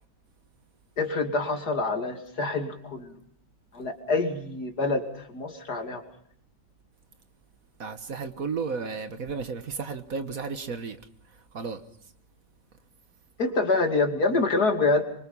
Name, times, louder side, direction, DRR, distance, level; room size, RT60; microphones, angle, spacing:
voice 1, 1.0-3.1 3.7-6.0 13.4-15.0, left 3 dB, 65° left, 3.1 m, -26 dB
voice 2, 7.8-11.0 11.5-11.8, right 5 dB, 55° right, 1.7 m, -33 dB
25.0 x 24.0 x 5.5 m
omnidirectional pair, 1.8 m